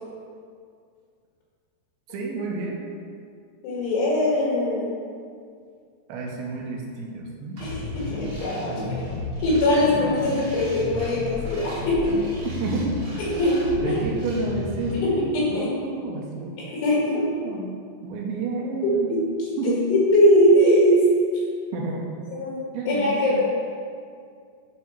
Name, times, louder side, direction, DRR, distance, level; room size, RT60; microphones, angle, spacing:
voice 1, 2.1-2.8 6.1-7.6 8.7-9.0 12.4-13.2 13.7-15.2 15.5-16.6 17.1-17.7 18.0-19.2 19.6-19.9 21.7-22.1 22.7-23.4, right 3 dB, 80° right, -1 dB, 2.2 m, -30 dB
voice 2, 3.6-4.9 7.6-7.8 8.1-8.8 9.4-12.2 13.4-14.0 15.0-15.7 16.6-17.2 19.9-21.0 22.3-22.6 22.9-23.4, left 1 dB, 90° left, -6 dB, 4.4 m, -21 dB
sound 1, 7.6-14.9, left 2 dB, 55° right, 1.3 m, -33 dB
10.5 x 3.8 x 4.6 m, 2.2 s
omnidirectional pair, 5.4 m